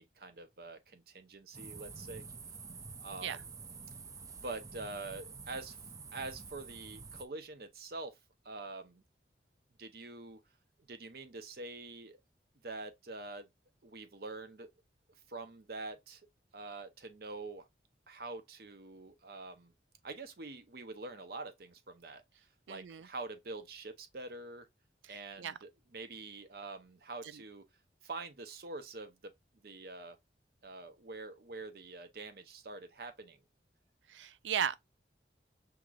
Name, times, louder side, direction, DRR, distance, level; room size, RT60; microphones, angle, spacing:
voice 1, 0.0-2.2 3.0-3.5 4.4-5.8 6.1-8.2 8.4-9.0 9.8-10.4 10.9-12.2 12.6-13.5 13.8-14.7 15.3-16.2 16.5-17.7 18.1-19.7 20.0-22.2 22.7-24.7 25.1-27.6 28.0-29.3 29.6-30.2 30.6-33.4, right 3 dB, 55° right, 0.7 m, -45 dB
sound 1, 1.5-7.3, right 4 dB, 20° right, 0.3 m, -48 dB
voice 2, 22.7-23.1 25.1-25.6 34.1-34.7, right 8 dB, 90° right, 0.4 m, -36 dB
6.0 x 2.9 x 2.4 m
head